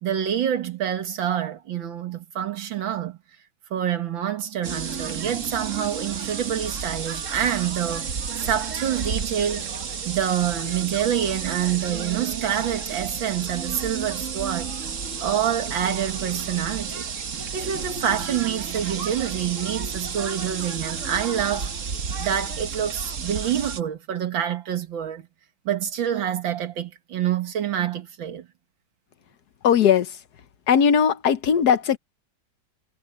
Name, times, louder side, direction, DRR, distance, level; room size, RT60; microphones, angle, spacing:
voice 1, 0.0-3.2 3.7-8.1 8.4-9.6 10.1-14.7 15.2-17.1 17.5-21.7 22.2-25.3 25.7-28.5, right 9 dB, 85° right, 2.3 m, -27 dB
sound 1, 4.6-23.8, right 6 dB, 45° right, 1.4 m, -32 dB
voice 2, 29.6-30.2 30.7-32.0, left 7 dB, 60° left, 1.3 m, -19 dB
omnidirectional pair, 2.1 m